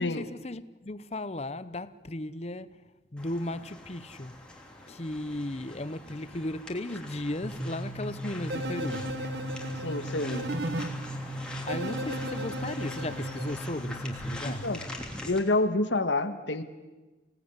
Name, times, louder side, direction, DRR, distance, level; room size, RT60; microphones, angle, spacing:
voice 1, 0.0-2.8 3.1-4.3 4.9-9.2 11.6-14.6, left 1 dB, 35° left, 0.8 m, -36 dB
sound 1, 3.2-15.4, left 1 dB, 5° left, 3.2 m, -44 dB
sound 2, 7.4-15.0, right 1 dB, 30° right, 2.7 m, -38 dB
sound 3, 8.5-10.9 11.7-13.5, equal, 65° right, 1.7 m, -36 dB
voice 2, 9.8-10.6 14.5-14.8 15.3-16.6, left 2 dB, 85° left, 1.6 m, -28 dB
26.0 x 18.5 x 9.8 m
head